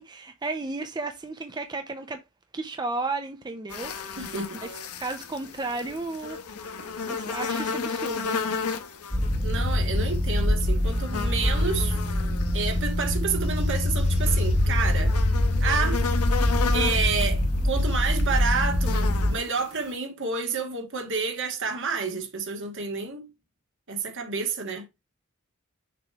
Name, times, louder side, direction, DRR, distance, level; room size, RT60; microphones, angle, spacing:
voice 1, 0.0-2.2 2.5-4.3 4.6-4.7 5.0-6.4 7.1-8.4, right 3 dB, 20° right, 0.5 m, -33 dB
sound 1, 3.7-19.9, left 5 dB, 85° left, 1.0 m, -35 dB
voice 2, 4.2-4.6 9.4-12.0 12.5-15.1 15.6-16.0 16.7-23.3 23.9-24.8, right 5 dB, 60° right, 1.7 m, -29 dB
sound 2, 9.1-19.4, left 1 dB, 20° left, 1.5 m, -24 dB
6.7 x 3.1 x 4.6 m
head